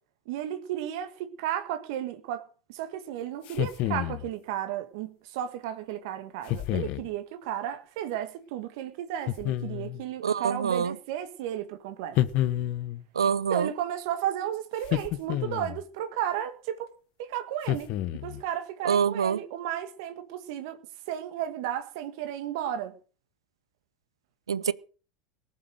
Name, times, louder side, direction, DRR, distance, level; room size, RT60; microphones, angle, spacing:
voice 1, 0.3-2.4 2.7-12.2 13.5-16.9 17.2-17.9 18.2-20.8 21.1-22.9, right 11 dB, 65° right, 1.6 m, -33 dB
sound 1, 3.5-4.3 6.5-7.1 9.3-10.0 12.2-13.0 14.8-15.8 17.6-18.4, left 13 dB, 55° left, 1.0 m, -29 dB
voice 2, 10.2-11.0 13.1-13.7 18.8-19.4 24.5-24.7, right 7 dB, 85° right, 0.6 m, -25 dB
19.0 x 7.5 x 6.5 m
hypercardioid pair, 85°, 3 cm